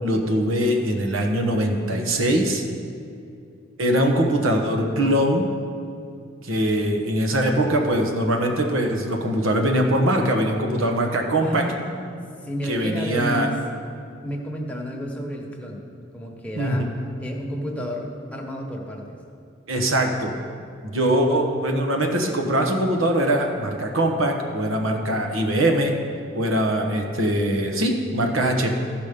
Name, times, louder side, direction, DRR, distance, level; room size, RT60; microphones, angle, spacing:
voice 1, 0.0-2.6 3.8-5.5 6.4-11.7 12.6-13.5 16.6-16.8 19.7-20.3 20.8-26.0 26.3-28.7, right 1 dB, 90° right, 3 dB, 1.2 m, -22 dB
voice 2, 11.4-13.6 14.2-15.9 16.1-16.9 17.2-19.2, equal, 5° left, -1 dB, 1.1 m, -31 dB
14.5 x 5.1 x 5.2 m, 2.4 s
head